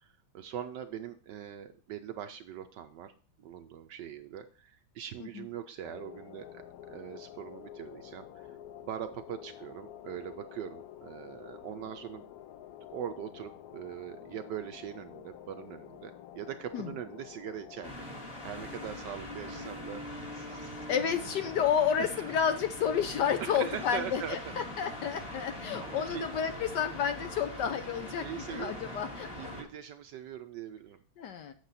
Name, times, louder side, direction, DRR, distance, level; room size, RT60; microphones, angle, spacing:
voice 1, 0.0-3.1 3.4-6.6 6.9-8.6 8.8-12.3 12.9-18.1 18.4-20.0 20.3-20.9 22.0-22.4 23.4-24.5 25.3-26.3 28.2-29.1 29.4-31.0, right 9 dB, 70° right, 9 dB, 1.0 m, -42 dB
sound 1, 5.8-17.9, left 11 dB, 85° left, 0.8 m, -49 dB
sound 2, 17.8-29.6, left 1 dB, 30° left, 2.1 m, -42 dB
voice 2, 20.9-29.5 31.2-31.5, left 8 dB, 70° left, 9 dB, 1.1 m, -31 dB
8.0 x 6.6 x 4.0 m, 0.43 s
omnidirectional pair, 2.3 m